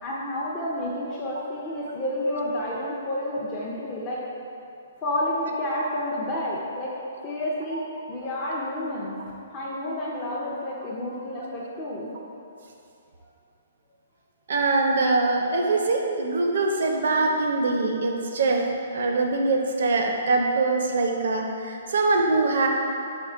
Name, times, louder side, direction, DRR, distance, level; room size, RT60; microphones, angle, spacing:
voice 1, 0.0-4.2 5.0-6.9 7.2-7.8 8.1-9.1 9.5-12.1, left 1 dB, 30° left, -6 dB, 0.5 m, -30 dB
voice 2, 14.5-18.7 18.9-22.7, right 3 dB, 65° right, 2 dB, 0.4 m, -23 dB
4.2 x 2.2 x 3.6 m, 2.6 s
hypercardioid pair, 130°, 0 cm